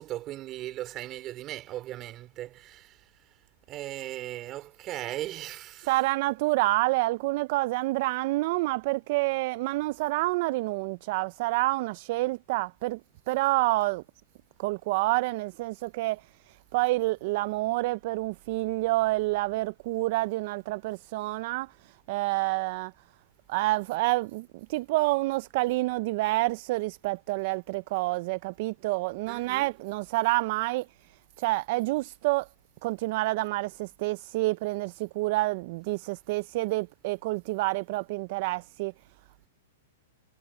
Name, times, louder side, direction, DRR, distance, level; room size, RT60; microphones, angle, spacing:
voice 1, 0.0-3.0 3.7-6.0 29.3-29.7, right 14 dB, 25° right, 3.4 m, -38 dB
voice 2, 5.9-13.0 13.3-14.0 14.6-16.2 16.5-22.9 23.5-30.9 31.4-32.5 32.8-38.9, right 21 dB, 45° right, 0.3 m, -28 dB
hypercardioid pair, 160°, 0 cm